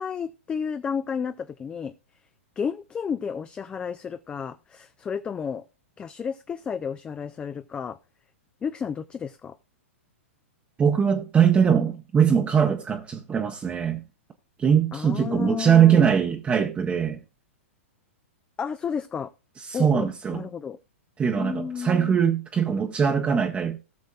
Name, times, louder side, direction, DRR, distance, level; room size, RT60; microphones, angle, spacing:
voice 1, 0.0-1.9 2.6-5.7 6.0-8.0 8.6-9.6 14.9-16.1 18.6-19.3 19.7-20.8 21.4-22.2, left 6 dB, 15° left, 0.4 m, -32 dB
voice 2, 10.8-14.0 14.6-17.2 19.7-20.4 21.2-23.8, right 7 dB, 15° right, 0.8 m, -21 dB
18.0 x 6.4 x 2.3 m
figure-of-eight pair, 105°, 7 cm